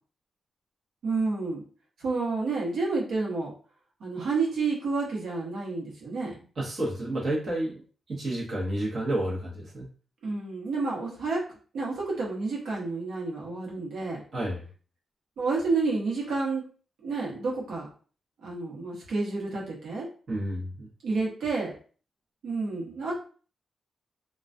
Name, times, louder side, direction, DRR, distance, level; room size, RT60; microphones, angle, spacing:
voice 1, 1.0-1.6 2.0-3.5 4.0-6.4 10.2-11.4 11.7-14.2 15.4-16.6 17.0-17.9 18.4-20.1 21.0-21.7 22.4-23.1, right 3 dB, 75° right, -4 dB, 0.9 m, -29 dB
voice 2, 6.6-7.8 8.1-9.9 14.3-14.6 20.3-20.9, right 1 dB, 40° right, -5 dB, 0.9 m, -30 dB
2.2 x 2.2 x 2.5 m, 0.40 s
wide cardioid pair, 170°, 0 cm